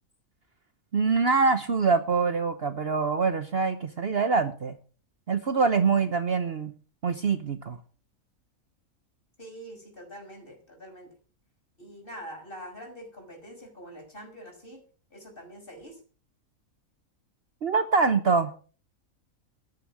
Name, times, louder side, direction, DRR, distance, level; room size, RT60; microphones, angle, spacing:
voice 1, 0.9-4.8 5.3-6.7 7.0-7.8 17.6-18.7, right 4 dB, 50° right, 11 dB, 1.1 m, -24 dB
voice 2, 9.4-11.1 11.8-14.8 15.1-16.0, equal, 40° left, 2 dB, 6.1 m, -44 dB
13.5 x 11.0 x 6.1 m, 0.40 s
omnidirectional pair, 1.5 m